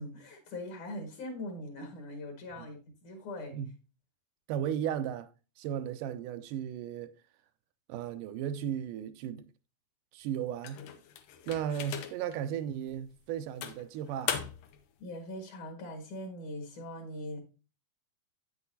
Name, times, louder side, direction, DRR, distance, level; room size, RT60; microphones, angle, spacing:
voice 1, 0.0-3.6 15.0-17.4, left 1 dB, 65° left, 3.1 m, -41 dB
voice 2, 4.5-5.3 5.6-7.1 7.9-9.5 10.1-10.8 11.5-14.4, right 9 dB, 85° right, 2.2 m, -35 dB
sound 1, 10.6-12.4 12.9-13.0 13.6-14.8, left 9 dB, 90° left, 2.6 m, -38 dB
8.7 x 8.1 x 2.7 m
omnidirectional pair, 3.8 m